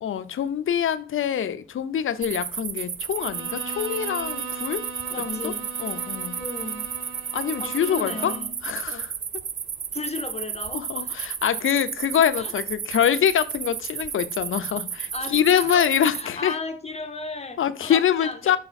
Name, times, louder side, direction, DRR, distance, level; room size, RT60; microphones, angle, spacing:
voice 1, 0.0-4.9 5.2-5.5 5.8-6.4 7.3-8.4 8.6-9.4 10.7-16.6 17.6-18.6, left 9 dB, 75° left, 0.6 m, -25 dB
sound 1, 2.2-16.2, right 7 dB, 45° right, 0.4 m, -33 dB
Bowed string instrument, 3.1-8.6, right 3 dB, 80° right, 0.9 m, -38 dB
voice 2, 5.1-5.7 6.4-6.9 7.6-8.5 9.9-11.2 12.4-12.5 15.1-18.6, left 3 dB, 30° left, 0.7 m, -34 dB
5.7 x 4.8 x 4.1 m
wide cardioid pair, 140°, 21 cm